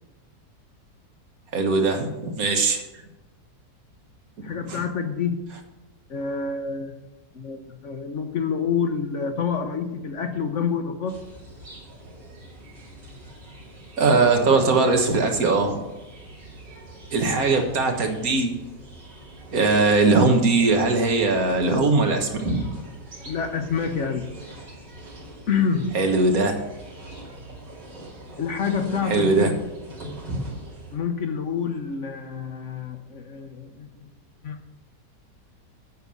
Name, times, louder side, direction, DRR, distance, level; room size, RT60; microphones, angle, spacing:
voice 1, 1.5-2.8 4.7-4.8 14.0-15.8 17.1-18.5 19.5-22.3 25.9-26.5 29.1-29.5, right 3 dB, 60° right, 4 dB, 1.7 m, -20 dB
voice 2, 4.4-5.5 6.1-6.9 7.3-11.3 17.3-17.7 23.3-24.4 25.5-26.1 28.4-29.7 30.9-34.1 34.4-34.6, left 6 dB, 55° left, 7 dB, 0.9 m, -28 dB
sound 1, 11.1-31.0, right 1 dB, 80° right, 3.0 m, -39 dB
8.9 x 6.7 x 7.0 m, 1.0 s
omnidirectional pair, 1.8 m